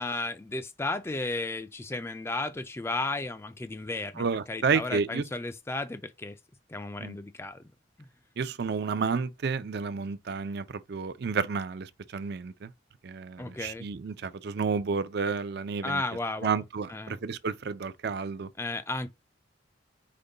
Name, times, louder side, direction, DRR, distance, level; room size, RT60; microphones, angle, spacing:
voice 1, 0.0-6.4 6.7-7.6 13.4-13.9 15.8-16.6 16.9-17.1 18.6-19.1, left 2 dB, 15° left, 0.3 m, -34 dB
voice 2, 4.2-5.2 7.0-7.2 8.4-12.7 13.0-16.0 16.4-18.5, right 5 dB, 60° right, 0.5 m, -31 dB
5.1 x 2.2 x 3.8 m
head